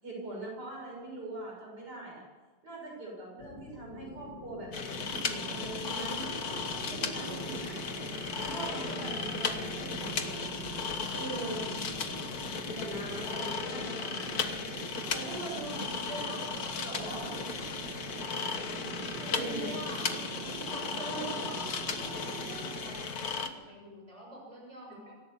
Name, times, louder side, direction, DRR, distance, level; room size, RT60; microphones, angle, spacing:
voice 1, 0.0-2.2 2.6-6.4 6.9-7.8 8.4-10.5 11.1-11.7 12.7-14.5 15.1-17.3 19.3-19.8 21.0-21.4, right 2 dB, 65° right, -2 dB, 7.7 m, -41 dB
sound 1, 3.4-13.9, left 7 dB, 75° left, 1.6 m, -48 dB
sound 2, 4.7-23.5, left 5 dB, 60° left, 1.8 m, -36 dB
sound 3, 4.9-23.1, right 9 dB, 80° right, 1.5 m, -44 dB
voice 2, 15.5-16.1 18.9-20.1 20.4-25.2, equal, 20° right, -1 dB, 6.3 m, -47 dB
26.0 x 15.5 x 7.3 m, 1.3 s
omnidirectional pair, 1.9 m